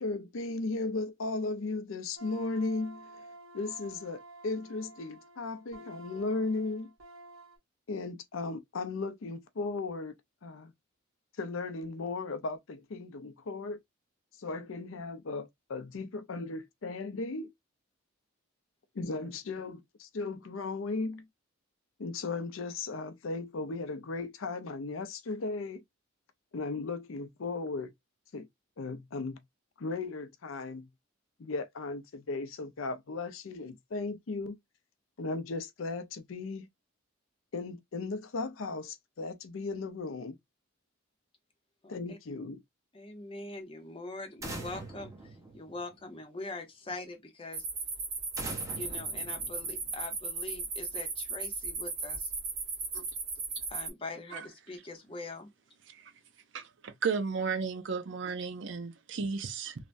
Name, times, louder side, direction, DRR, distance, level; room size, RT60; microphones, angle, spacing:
voice 1, 0.0-3.1 3.5-6.9 7.9-10.1 10.4-10.7 11.4-13.8 14.4-17.5 18.9-21.3 22.0-25.8 26.5-27.9 28.3-28.5 28.8-29.4 29.8-30.9 31.4-34.6 35.2-36.7 37.5-40.4 41.9-42.6, left 3 dB, 75° left, 0.5 m, -36 dB
sound 1, 2.2-7.6, right 2 dB, 75° right, 1.2 m, -51 dB
voice 2, 41.8-42.2 42.9-47.7 48.7-52.3 53.7-55.5, left 2 dB, 25° left, 0.7 m, -43 dB
sound 2, 44.4-46.2 48.4-50.1, right 2 dB, 15° right, 0.7 m, -43 dB
sound 3, 47.5-53.9, right 4 dB, 45° right, 1.1 m, -36 dB
voice 3, 56.5-59.7, right 5 dB, 60° right, 0.5 m, -34 dB
3.2 x 2.1 x 2.4 m
head